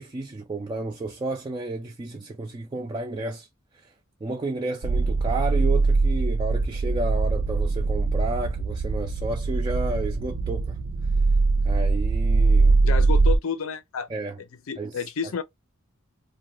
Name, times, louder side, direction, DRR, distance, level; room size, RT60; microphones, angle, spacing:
voice 1, 0.0-3.5 3.7-3.9 4.2-10.8 11.6-12.8 14.1-14.4 14.8-15.0, right 2 dB, 20° right, 0.3 m, -32 dB
sound 1, 4.8-13.4, right 3 dB, 75° right, 0.5 m, -22 dB
voice 2, 12.8-14.1 14.7-15.4, left 6 dB, 65° left, 0.5 m, -30 dB
2.4 x 2.2 x 3.0 m
head